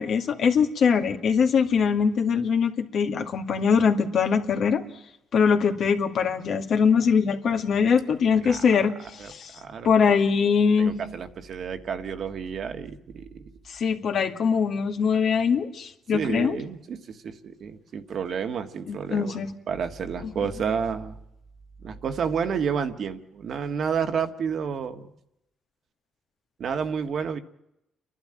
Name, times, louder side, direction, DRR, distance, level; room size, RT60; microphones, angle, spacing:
voice 1, 0.0-4.8 5.3-9.5 9.8-10.9 13.7-16.6 18.9-19.5 20.2-20.3, left 6 dB, 65° left, 5 dB, 2.2 m, -22 dB
voice 2, 9.2-9.9 10.8-13.5 16.1-19.4 19.7-21.2 21.8-25.1 26.6-27.4, right 6 dB, 60° right, 7 dB, 1.7 m, -30 dB
29.5 x 12.0 x 8.9 m, 0.85 s
cardioid pair, 90°, 0 cm